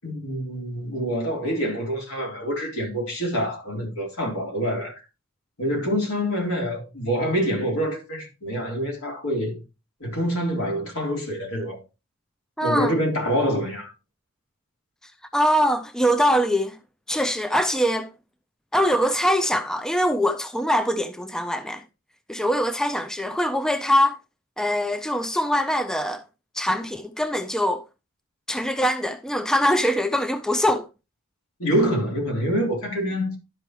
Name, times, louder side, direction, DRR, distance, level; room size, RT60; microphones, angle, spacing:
voice 1, 0.0-5.0 5.6-9.6 10.0-11.8 12.6-13.9 31.6-33.4, equal, 80° left, 3.5 m, -26 dB
voice 2, 12.6-12.9 15.3-16.8 17.1-18.1 18.7-21.8 22.3-24.2 24.6-26.2 26.5-27.8 28.5-30.9, equal, 5° left, 0.3 m, -23 dB
12.0 x 5.4 x 3.1 m
head